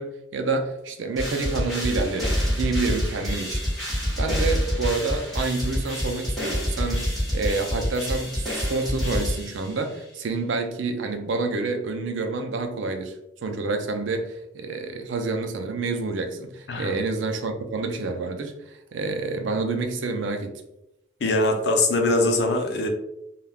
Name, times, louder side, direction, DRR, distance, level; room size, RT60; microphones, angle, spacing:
voice 1, 0.0-3.6 3.9-13.1 13.4-20.5, right 3 dB, 80° right, 0.4 m, -28 dB
sound 1, 1.2-10.0, equal, ahead, 1.0 m, -27 dB
voice 2, 21.2-22.9, left 2 dB, 65° left, 0.5 m, -22 dB
3.4 x 2.2 x 2.3 m
head